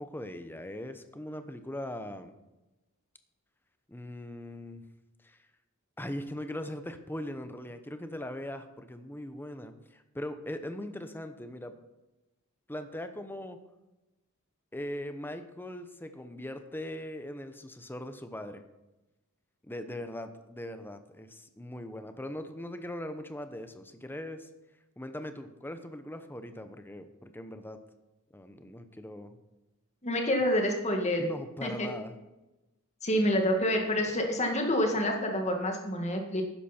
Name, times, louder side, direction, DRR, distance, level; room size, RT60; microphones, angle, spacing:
voice 1, 0.0-2.4 3.9-4.8 5.2-5.4 6.0-11.7 12.7-13.6 14.7-18.6 19.6-24.5 25.0-27.8 28.3-29.4 31.2-32.2, left 1 dB, 10° left, 9 dB, 0.8 m, -40 dB
voice 2, 30.0-31.3 31.6-31.9 33.0-36.4, left 1 dB, 30° left, 3 dB, 2.0 m, -28 dB
12.5 x 10.0 x 4.4 m, 1.0 s
head